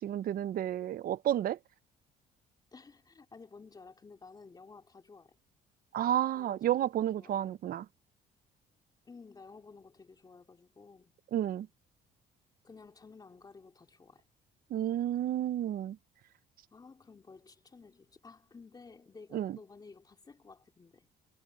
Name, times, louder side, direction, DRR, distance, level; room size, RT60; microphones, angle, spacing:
voice 1, 0.0-1.6 5.9-7.9 11.3-11.7 14.7-16.0 19.3-19.6, right 11 dB, 60° right, 0.9 m, -31 dB
voice 2, 2.7-5.4 6.3-6.9 7.1-7.6 9.0-11.1 12.6-14.2 16.7-21.1, left 4 dB, 25° left, 3.2 m, -54 dB
cardioid pair, 110°, 17 cm